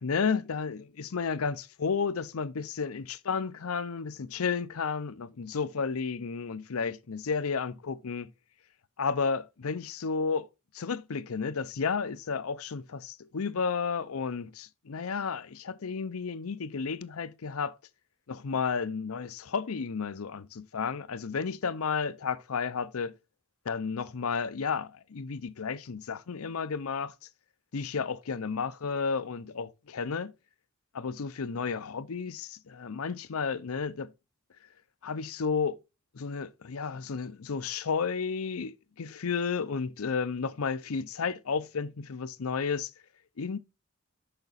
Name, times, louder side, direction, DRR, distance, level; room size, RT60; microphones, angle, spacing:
voice 1, 0.0-8.3 9.0-10.5 10.7-17.7 18.3-23.1 23.7-27.1 27.7-30.3 30.9-34.1 35.0-35.8 36.1-42.9 43.4-43.6, left 5 dB, 75° left, 0.6 m, -32 dB
6.7 x 5.8 x 4.0 m
head